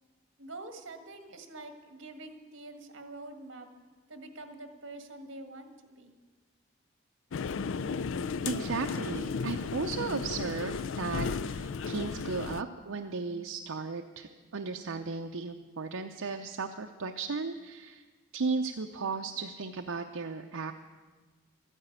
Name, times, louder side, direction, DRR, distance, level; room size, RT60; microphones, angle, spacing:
voice 1, 0.4-3.7 4.1-6.2, right 2 dB, 60° right, 7 dB, 1.7 m, -46 dB
sound 1, 7.3-12.6, left 5 dB, 65° left, 0.4 m, -34 dB
voice 2, 8.4-18.0 18.3-20.7, right 4 dB, 80° right, 4 dB, 0.7 m, -35 dB
13.5 x 10.0 x 9.2 m, 1.3 s
head